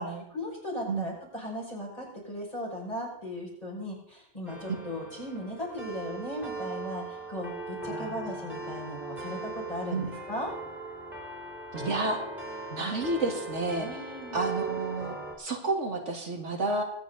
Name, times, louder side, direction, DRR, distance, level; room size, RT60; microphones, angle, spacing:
voice 1, 0.0-10.5 13.8-14.4, left 1 dB, 30° left, -3 dB, 6.0 m, -37 dB
sound 1, 4.5-15.4, right 3 dB, ahead, 3.8 m, -39 dB
voice 2, 7.9-8.2 9.9-10.1 11.7-12.2 12.7-13.9 14.3-16.8, right 3 dB, 85° right, 3 dB, 2.3 m, -31 dB
23.0 x 9.2 x 4.0 m, 0.69 s
omnidirectional pair, 1.2 m